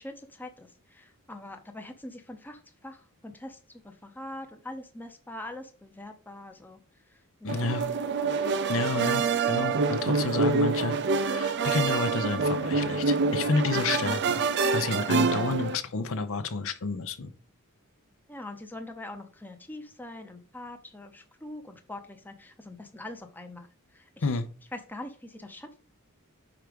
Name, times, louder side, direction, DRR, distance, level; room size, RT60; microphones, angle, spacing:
voice 1, 0.0-6.8 7.1-7.6 18.3-24.1 24.7-25.8, left 1 dB, 10° left, 5 dB, 0.7 m, -43 dB
voice 2, 7.4-7.9 8.7-17.3 24.2-24.5, left 3 dB, 65° left, 11 dB, 0.7 m, -30 dB
sound 1, 7.5-15.8, right 4 dB, 50° right, 0.6 m, -26 dB
4.9 x 4.5 x 5.1 m, 0.39 s
head